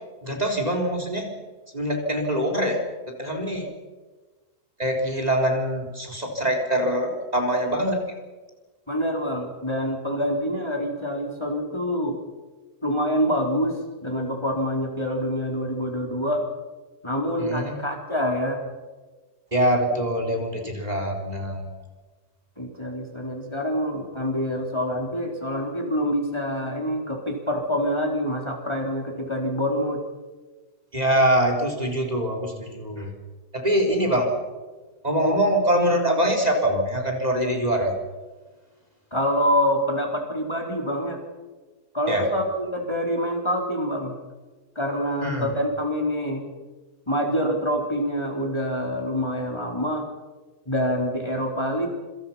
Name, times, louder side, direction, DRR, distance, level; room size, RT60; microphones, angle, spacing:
voice 1, 0.2-1.3 1.7-2.8 3.2-3.7 4.8-8.0 17.4-17.8 19.5-21.8 30.9-33.1 33.5-34.4 35.0-37.9 42.1-42.2 45.2-45.5, right 1 dB, 25° right, 2 dB, 4.0 m, -24 dB
voice 2, 8.9-12.2 12.8-16.4 17.0-18.6 22.6-30.0 39.1-41.2 41.9-44.1 44.8-46.5 47.1-50.1 50.7-51.9, equal, 15° left, 1 dB, 4.1 m, -26 dB
27.5 x 25.5 x 5.8 m, 1.3 s
omnidirectional pair, 1.7 m